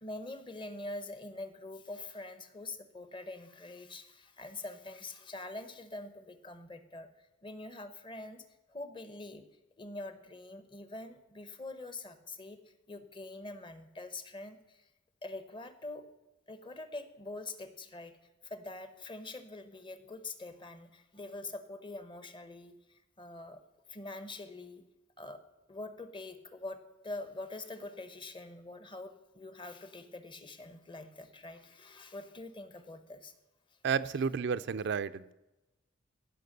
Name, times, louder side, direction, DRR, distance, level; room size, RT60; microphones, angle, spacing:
voice 1, 0.0-7.1 7.4-8.4 8.7-9.4 9.8-12.6 12.9-14.8 15.2-16.1 16.5-18.2 18.4-22.7 23.2-23.6 23.9-24.8 25.2-25.4 25.7-33.3, left 2 dB, 25° left, 10 dB, 1.0 m, -44 dB
voice 2, 33.8-35.3, right 6 dB, 60° right, 12 dB, 0.4 m, -31 dB
16.0 x 5.9 x 6.7 m, 1.0 s
head